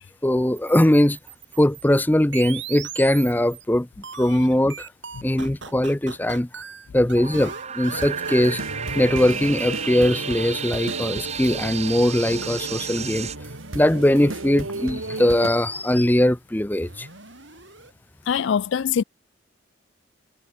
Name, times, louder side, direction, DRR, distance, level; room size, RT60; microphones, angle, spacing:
voice 1, 0.2-1.2 1.6-3.9 4.1-4.9 5.2-6.5 6.9-8.6 8.9-13.3 13.7-17.1, left 1 dB, 10° left, 0.6 m, -20 dB
sound 1, 0.6-3.6 4.0-11.0 11.3-12.4 13.3-14.3 15.0-16.1 16.8-17.9, right 5 dB, 65° right, 7.5 m, -40 dB
sound 2, 7.1-13.4, right 7 dB, 35° right, 1.5 m, -33 dB
sound 3, 7.9-15.5, right 2 dB, 85° right, 2.3 m, -34 dB
voice 2, 18.3-19.0, left 7 dB, 65° left, 0.4 m, -23 dB
head